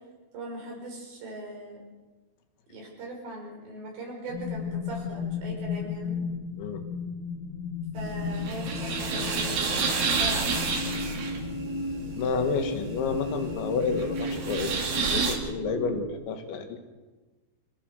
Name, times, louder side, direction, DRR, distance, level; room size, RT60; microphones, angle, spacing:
voice 1, 0.3-1.8 2.7-6.2 7.9-10.7, right 1 dB, 75° right, -1 dB, 8.1 m, -40 dB
sound 1, 4.3-16.1, left 6 dB, 65° left, 3.8 m, -37 dB
sound 2, 8.0-15.4, right 5 dB, 55° right, 4.0 m, -30 dB
sound 3, 8.8-16.1, left 1 dB, 40° left, 2.0 m, -37 dB
voice 2, 12.2-14.9 15.1-16.8, left 5 dB, 85° left, 6 dB, 4.2 m, -30 dB
26.5 x 16.0 x 6.6 m, 1.3 s
omnidirectional pair, 5.1 m